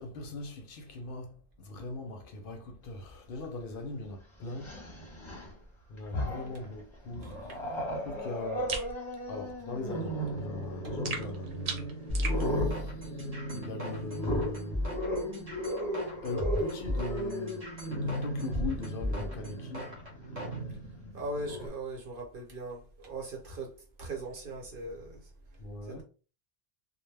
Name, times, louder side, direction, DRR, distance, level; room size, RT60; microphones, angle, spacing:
voice 1, 0.0-5.1 5.9-7.3 8.0-8.8 9.3-11.9 12.2-13.2 13.6-14.9 16.2-17.7 18.0-19.9 25.6-26.0, left 2 dB, 65° left, 0.7 m, -40 dB
Growling, 3.4-3.5 4.5-5.5 6.0-6.7 7.1-21.7, equal, 30° left, 0.7 m, -36 dB
sound 1, 8.7-8.9 11.0-12.4, right 5 dB, 90° right, 0.9 m, -36 dB
sound 2, 12.1-20.6, left 1 dB, 40° right, 0.9 m, -35 dB
voice 2, 21.1-23.7 24.0-25.2 25.9-26.0, right 2 dB, 60° right, 1.0 m, -39 dB
2.1 x 2.1 x 3.2 m
omnidirectional pair, 1.1 m